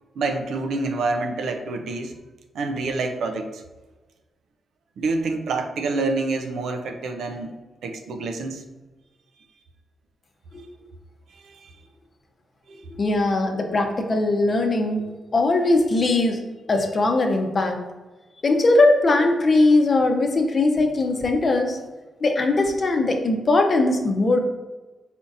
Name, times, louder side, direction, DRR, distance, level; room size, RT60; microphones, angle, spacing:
voice 1, 0.2-2.2 2.5-3.6 5.0-7.5 7.8-8.6 11.3-11.7 12.7-12.8, right 3 dB, 80° right, 5 dB, 0.5 m, -27 dB
voice 2, 12.9-16.4 16.7-17.8 18.4-21.8 22.2-24.4, left 2 dB, 45° left, 3 dB, 0.7 m, -20 dB
4.4 x 3.9 x 2.5 m, 1.2 s
cardioid pair, 70°, 0 cm